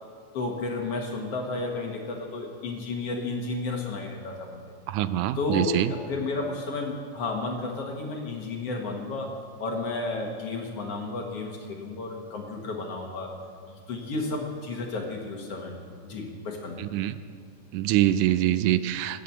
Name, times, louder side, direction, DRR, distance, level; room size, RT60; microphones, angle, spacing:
voice 1, 0.3-4.6 5.4-9.3 9.6-13.3 13.7-15.7 16.0-16.8, left 3 dB, 55° left, 1 dB, 2.2 m, -32 dB
voice 2, 4.9-5.9 16.8-17.2 17.7-19.2, right 13 dB, 80° right, 13 dB, 2.0 m, -24 dB
21.0 x 7.7 x 8.4 m, 2.1 s
omnidirectional pair, 3.7 m